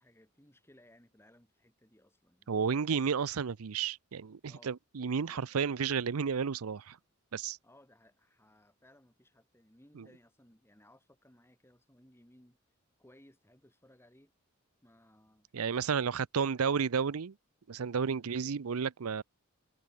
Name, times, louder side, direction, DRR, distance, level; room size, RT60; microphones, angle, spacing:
voice 1, 0.0-3.2 4.5-4.7 5.2-5.6 7.6-12.6 13.0-14.3 14.8-16.6 18.0-18.3, left 1 dB, 10° left, 5.2 m, -62 dB
voice 2, 2.5-7.0 7.3-7.6 15.5-17.3 17.7-19.2, right 6 dB, 85° right, 0.6 m, -32 dB
head